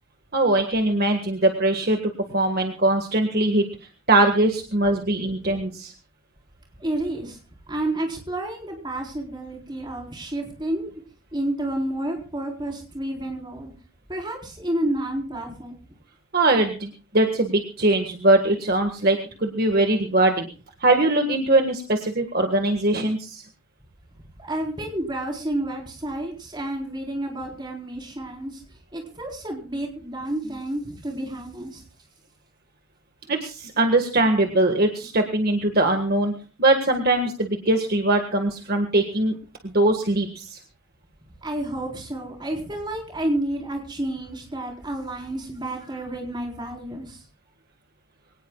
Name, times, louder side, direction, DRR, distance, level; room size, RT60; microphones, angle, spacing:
voice 1, 0.3-2.0 2.3-3.7 4.1-5.9 16.3-20.5 20.8-23.4 33.3-36.3 36.6-39.3 39.6-40.6, right 2 dB, 45° right, 4 dB, 1.6 m, -21 dB
voice 2, 6.8-7.4 7.7-10.9 11.3-13.7 14.1-15.8 24.4-28.6 28.9-31.8 41.4-47.2, right 1 dB, 20° right, 1 dB, 4.2 m, -30 dB
23.5 x 18.5 x 2.3 m, 0.35 s
head